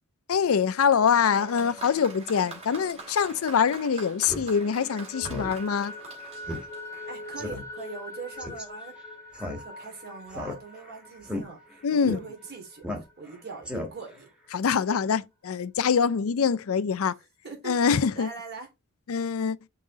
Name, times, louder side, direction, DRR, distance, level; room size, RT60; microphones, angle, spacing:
voice 1, 0.3-5.9 11.8-12.2 14.5-17.1 17.7-18.3 19.1-19.6, left 6 dB, 75° left, 0.5 m, -24 dB
Applause, 1.0-7.5, right 3 dB, 30° right, 3.2 m, -45 dB
sound 1, 1.3-4.0 4.4-13.8, left 1 dB, 15° left, 1.3 m, -44 dB
Speech synthesizer, 4.2-4.5 4.8-4.9 5.2-5.5 5.9-6.0 6.5-6.6 6.9-7.0 7.4-7.6 8.4-8.6 9.3-9.9 10.3-10.9 11.2-11.4 12.0-12.2 12.8-13.3 13.6-14.2, left 1 dB, 5° right, 1.5 m, -34 dB
voice 2, 7.0-8.9 9.3-12.8 13.2-14.3 17.4-18.7, right 4 dB, 50° right, 2.8 m, -42 dB
5.5 x 3.8 x 4.7 m
head